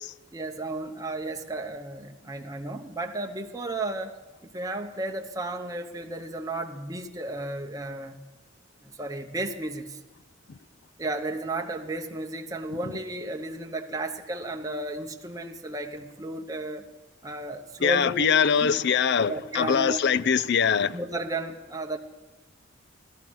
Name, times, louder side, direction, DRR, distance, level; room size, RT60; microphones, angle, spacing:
voice 1, 0.3-4.2 4.4-8.3 8.8-10.0 11.0-16.9 17.2-18.8 19.3-20.0 20.9-22.0, right 2 dB, 20° right, 0.8 m, -33 dB
voice 2, 17.8-21.0, left 7 dB, 60° left, 0.5 m, -23 dB
16.5 x 13.5 x 6.2 m
head